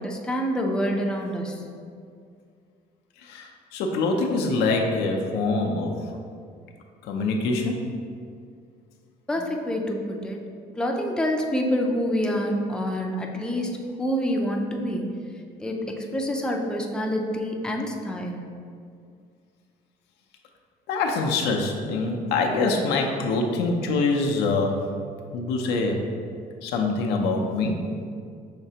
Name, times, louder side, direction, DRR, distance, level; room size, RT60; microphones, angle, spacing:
voice 1, 0.0-1.6 9.3-10.4 10.8-15.0 15.6-18.4, equal, 5° left, 0 dB, 0.5 m, -27 dB
voice 2, 3.2-5.9 7.1-7.8 20.9-24.8 25.3-26.0 26.6-27.8, left 3 dB, 85° left, 1 dB, 0.6 m, -24 dB
5.8 x 3.2 x 2.8 m, 2.2 s
cardioid pair, 110°, 17 cm